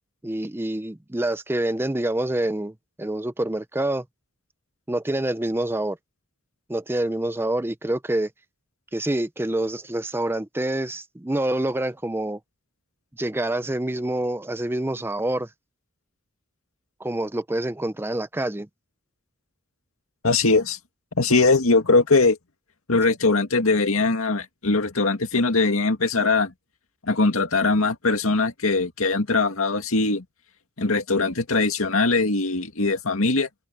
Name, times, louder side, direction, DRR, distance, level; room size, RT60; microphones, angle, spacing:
voice 1, 0.2-4.0 4.9-6.0 6.7-8.3 8.9-12.4 13.2-15.5 17.0-18.7, right 1 dB, 10° right, 0.5 m, -26 dB
voice 2, 20.2-20.8 21.2-22.4 22.9-26.5 27.0-30.2 30.8-33.5, left 3 dB, 85° left, 2.2 m, -21 dB
open air
head